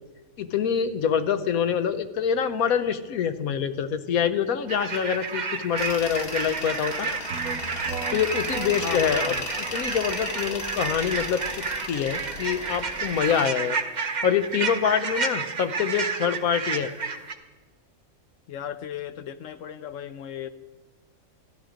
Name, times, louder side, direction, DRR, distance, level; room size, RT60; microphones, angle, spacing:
voice 1, 0.4-7.2 8.1-9.2 9.7-13.8 14.2-16.9, left 8 dB, 90° left, 11 dB, 1.2 m, -25 dB
sound 1, 4.7-17.3, right 5 dB, 40° right, 0.8 m, -31 dB
Tools, 5.8-13.5, left 3 dB, 45° left, 1.3 m, -36 dB
sound 2, 7.3-16.9, right 5 dB, 75° right, 1.4 m, -41 dB
voice 2, 8.8-9.5 18.5-20.5, left 9 dB, 70° left, 13 dB, 1.0 m, -35 dB
14.0 x 11.5 x 5.0 m, 1.2 s
omnidirectional pair, 1.4 m